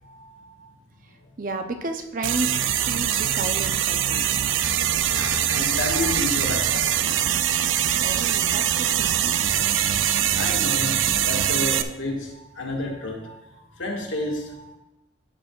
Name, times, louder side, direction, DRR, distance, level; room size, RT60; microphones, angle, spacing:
voice 1, 0.0-0.7 4.5-7.3 10.3-13.4 13.7-14.8, left 2 dB, 85° left, 0 dB, 1.8 m, -31 dB
voice 2, 1.4-4.5 8.0-9.3, right 2 dB, 45° right, 6 dB, 0.7 m, -32 dB
sound 1, 2.2-11.8, right 10 dB, 80° right, 0.4 m, -23 dB
11.5 x 7.8 x 2.4 m, 0.94 s
head